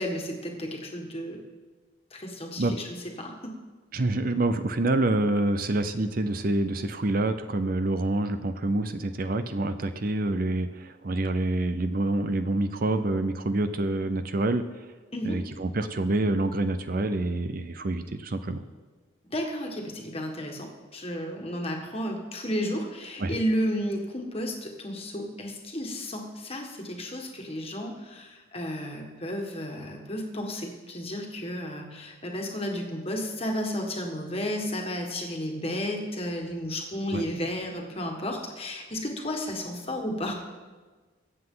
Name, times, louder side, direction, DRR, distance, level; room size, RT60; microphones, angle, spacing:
voice 1, 0.0-1.4 2.1-3.6 15.1-15.4 19.3-40.3, equal, 30° left, 1 dB, 1.7 m, -33 dB
voice 2, 3.9-14.6 15.2-18.7 23.2-23.4 37.1-37.2, right 2 dB, 45° right, 10 dB, 0.6 m, -27 dB
22.5 x 7.9 x 3.9 m, 1.4 s
head